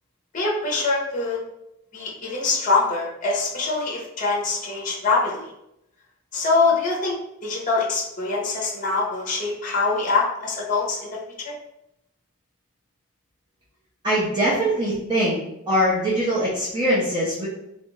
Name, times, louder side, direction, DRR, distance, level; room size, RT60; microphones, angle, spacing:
voice 1, 0.3-1.4 1.9-5.5 6.3-7.2 7.4-11.1 11.4-11.5, left 3 dB, 35° left, -2 dB, 0.8 m, -24 dB
voice 2, 14.0-15.4 15.7-17.5, equal, 20° right, -8 dB, 0.6 m, -22 dB
3.2 x 2.4 x 3.1 m, 0.83 s
head